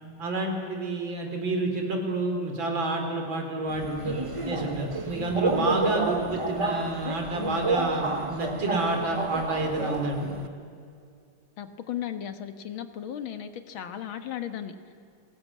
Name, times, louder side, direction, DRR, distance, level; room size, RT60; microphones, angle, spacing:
voice 1, 0.2-10.3, right 2 dB, 65° right, 3 dB, 4.1 m, -29 dB
Subway metro underground, 3.7-10.5, right 3 dB, 45° right, 0.4 m, -30 dB
voice 2, 11.6-14.8, left 10 dB, 75° left, 9 dB, 2.2 m, -36 dB
29.5 x 18.5 x 8.5 m, 2.3 s
omnidirectional pair, 2.3 m